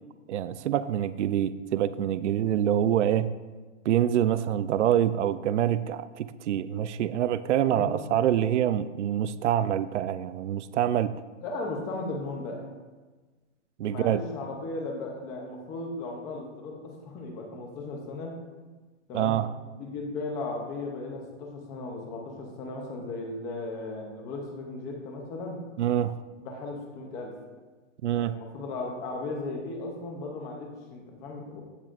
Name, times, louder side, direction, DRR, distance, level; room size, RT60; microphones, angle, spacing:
voice 1, 0.3-3.3 3.9-11.2 13.8-14.2 19.1-19.5 25.8-26.2 28.0-28.4, right 10 dB, 65° right, 14 dB, 0.6 m, -26 dB
voice 2, 11.4-12.7 13.9-18.3 19.1-19.4 19.8-25.6 26.4-27.3 28.1-31.6, left 2 dB, 10° left, 1 dB, 0.6 m, -36 dB
15.0 x 9.5 x 2.5 m, 1.3 s
hypercardioid pair, 165°, 38 cm